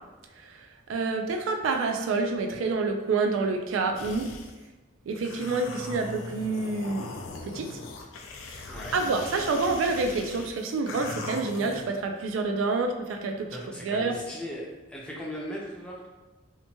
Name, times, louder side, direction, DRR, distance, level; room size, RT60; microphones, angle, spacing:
voice 1, 0.9-4.3 5.1-7.1 7.5-7.7 8.9-13.5 13.8-14.1, right 3 dB, 85° right, 4 dB, 0.3 m, -27 dB
sound 1, 3.9-4.6 5.1-11.8, left 3 dB, 90° left, 0.4 m, -40 dB
voice 2, 8.7-9.0 13.5-16.1, equal, 5° left, -5 dB, 0.4 m, -38 dB
2.8 x 2.2 x 2.8 m, 1.2 s
head